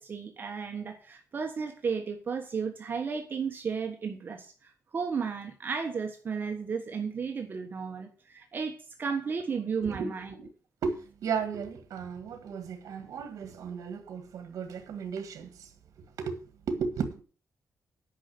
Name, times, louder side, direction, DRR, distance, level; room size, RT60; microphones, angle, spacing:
voice 1, 0.0-10.3, right 5 dB, 35° right, 1.3 m, -34 dB
voice 2, 9.8-10.5 10.8-11.0 11.2-15.7 16.2-16.3 16.7-17.2, right 5 dB, 75° right, 1.7 m, -35 dB
10.0 x 5.5 x 7.8 m
wide cardioid pair, 160°, 6 cm